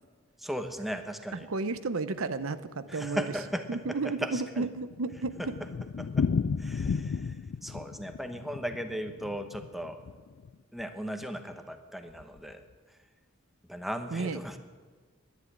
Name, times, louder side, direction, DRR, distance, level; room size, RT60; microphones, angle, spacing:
voice 1, 0.4-1.5 2.9-4.7 5.4-5.5 6.0-6.3 6.6-10.0 10.7-12.6 13.7-14.6, equal, ahead, 6 dB, 0.9 m, -37 dB
voice 2, 1.3-3.2 3.7-5.6 14.1-14.4, right 3 dB, 85° right, 12 dB, 0.7 m, -33 dB
Thunder, 4.3-10.5 10.8-10.9 11.2-11.3 11.5-11.6 12.2-12.5, left 5 dB, 60° left, 0.4 m, -33 dB
11.0 x 10.5 x 9.8 m, 1.5 s
head